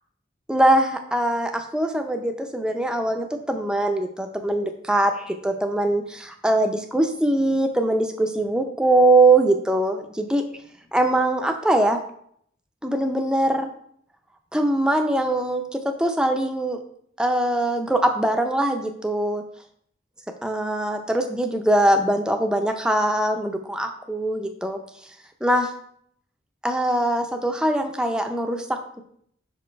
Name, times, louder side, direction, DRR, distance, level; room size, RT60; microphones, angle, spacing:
voice 1, 0.5-10.4 10.9-12.0 12.8-13.7 14.5-16.8 17.2-19.4 20.4-24.8 25.4-25.7 26.6-28.7, right 1 dB, 5° right, 4 dB, 0.6 m, -22 dB
5.7 x 5.2 x 4.6 m, 0.65 s
head